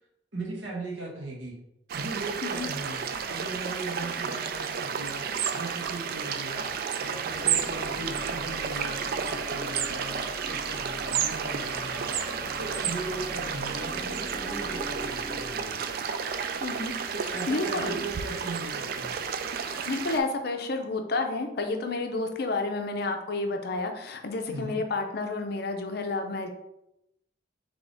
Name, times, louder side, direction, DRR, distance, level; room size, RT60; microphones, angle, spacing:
voice 1, 0.3-1.5 1.9-3.0 3.3-6.7 7.0-15.8 17.1-19.2 24.5-24.8, right 2 dB, 75° right, -2 dB, 1.2 m, -38 dB
sound 1, 1.9-20.2, right 7 dB, 50° right, 0.3 m, -32 dB
sound 2, 7.1-16.2, left 1 dB, 5° left, 1.1 m, -42 dB
voice 2, 16.6-16.9 17.5-18.0 19.6-26.5, left 3 dB, 55° left, 5 dB, 0.6 m, -30 dB
3.5 x 3.4 x 3.9 m, 0.85 s
head